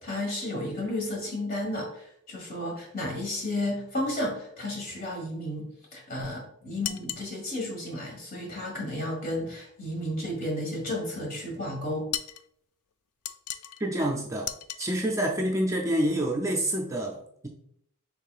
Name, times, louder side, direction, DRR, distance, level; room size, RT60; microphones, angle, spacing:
voice 1, 0.0-12.1, left 1 dB, 45° left, -1 dB, 1.5 m, -33 dB
sound 1, 6.8-7.3 12.1-12.5 13.3-13.8 14.4-14.9, left 11 dB, 75° left, 0.3 m, -35 dB
voice 2, 13.8-14.5 14.8-17.5, right 1 dB, 15° right, 0 dB, 0.5 m, -27 dB
5.6 x 3.7 x 2.4 m, 0.71 s
head